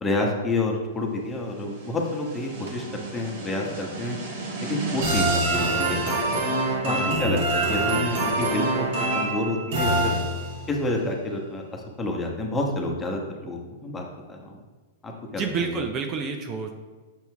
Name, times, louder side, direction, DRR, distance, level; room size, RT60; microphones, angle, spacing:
voice 1, 0.0-4.2 4.6-6.4 6.8-10.1 10.7-14.6 15.0-15.8, left 2 dB, 15° left, 1 dB, 1.1 m, -29 dB
sound 1, 1.8-10.7, right 2 dB, 65° right, 1.5 m, -26 dB
voice 2, 6.8-7.2 15.3-16.7, right 5 dB, 35° right, 5 dB, 0.6 m, -29 dB
7.0 x 4.4 x 3.5 m, 1.3 s
hypercardioid pair, 110°, 0 cm